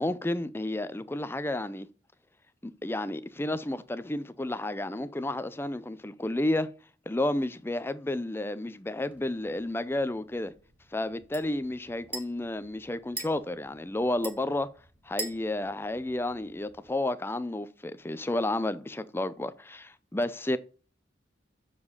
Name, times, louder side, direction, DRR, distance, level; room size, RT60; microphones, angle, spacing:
voice 1, 0.0-1.9 2.6-6.7 7.1-10.5 10.9-14.7 15.1-20.6, left 1 dB, 15° left, 0.5 m, -31 dB
sound 1, 9.1-16.9, right 2 dB, 10° right, 1.3 m, -45 dB
7.0 x 4.9 x 5.4 m
head